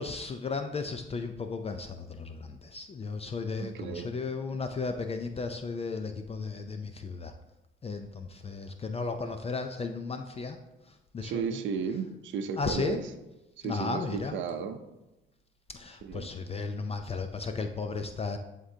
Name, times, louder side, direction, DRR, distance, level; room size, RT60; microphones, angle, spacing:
voice 1, 0.0-7.3 7.8-10.6 10.9-11.6 12.6-13.0 13.6-14.4 15.7-18.4, left 4 dB, 30° left, 7 dB, 0.5 m, -35 dB
voice 2, 3.6-4.1 11.2-13.1 13.6-14.8 16.0-16.3, right 6 dB, 70° right, 7 dB, 0.6 m, -34 dB
11.0 x 3.7 x 2.8 m, 0.97 s
cardioid pair, 90°, 20 cm